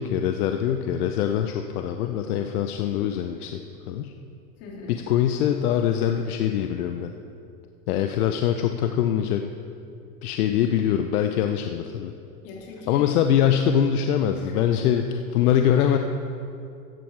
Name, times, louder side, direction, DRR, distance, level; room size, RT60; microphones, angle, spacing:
voice 1, 0.0-3.6 3.9-4.1 4.9-7.1 7.9-9.5 10.2-12.1 12.9-16.0, left 9 dB, 75° left, 6 dB, 0.8 m, -23 dB
voice 2, 4.6-4.9 12.4-13.1 14.4-14.7, left 3 dB, 45° left, -3 dB, 3.3 m, -42 dB
14.0 x 8.8 x 4.6 m, 2.5 s
supercardioid pair, 140°, 45 cm